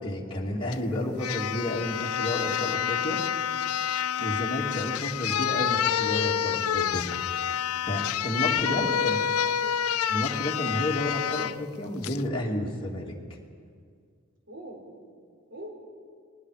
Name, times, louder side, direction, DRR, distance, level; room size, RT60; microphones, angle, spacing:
voice 1, 0.0-3.2 4.2-7.0 7.9-9.2 10.1-13.1, left 1 dB, 25° left, -3 dB, 2.8 m, -31 dB
sound 1, 0.7-0.8 1.2-11.6 12.0-12.2, left 9 dB, 85° left, 0.5 m, -28 dB
voice 2, 8.3-9.8 14.5-14.9 15.5-15.7, equal, 55° right, 0 dB, 4.4 m, -43 dB
28.5 x 21.0 x 5.0 m, 2.1 s
head